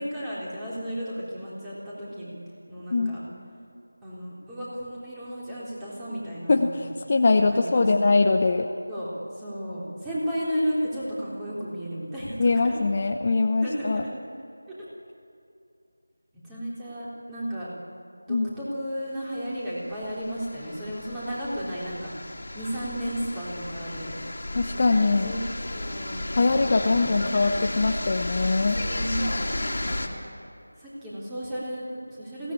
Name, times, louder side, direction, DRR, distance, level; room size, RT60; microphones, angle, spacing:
voice 1, 0.0-2.3 2.7-3.2 4.0-6.7 7.5-7.9 8.9-12.4 12.6-12.7 13.6-14.1 16.5-17.7 18.3-24.1 25.2-25.4 25.7-27.1 28.9-30.1 30.8-32.5, equal, 10° right, -8 dB, 3.7 m, -33 dB
voice 2, 6.5-8.7 12.4-14.0 18.3-18.5 24.5-25.4 26.3-28.8, left 3 dB, 35° left, 5 dB, 0.9 m, -22 dB
sound 1, 19.4-30.1, left 1 dB, 60° left, 2.8 m, -33 dB
22.5 x 17.5 x 8.5 m, 2.6 s
figure-of-eight pair, 170°, 0 cm